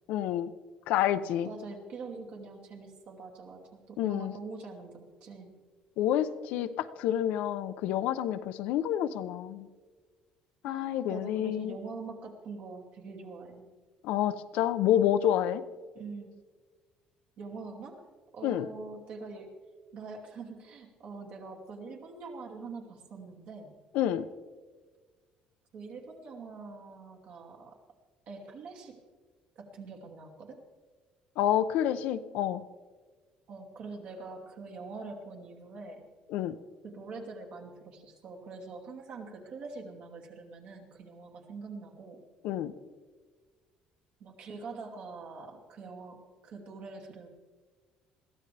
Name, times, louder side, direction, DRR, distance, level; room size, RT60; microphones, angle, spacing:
voice 1, 0.1-0.5 0.9-1.5 4.0-4.3 6.0-9.7 10.6-11.8 14.0-15.6 18.4-18.7 23.9-24.3 31.4-32.6 36.3-36.6 42.4-42.7, left 11 dB, 80° left, 11 dB, 0.7 m, -28 dB
voice 2, 1.4-5.5 10.6-13.7 15.9-16.4 17.4-18.1 18.3-19.6 19.9-23.8 25.7-27.8 28.3-29.0 29.6-30.6 33.5-36.1 36.8-42.3 44.2-47.3, right 4 dB, 55° right, 0 dB, 2.6 m, -44 dB
21.5 x 14.5 x 3.4 m, 1.4 s
cardioid pair, 150°, 2 cm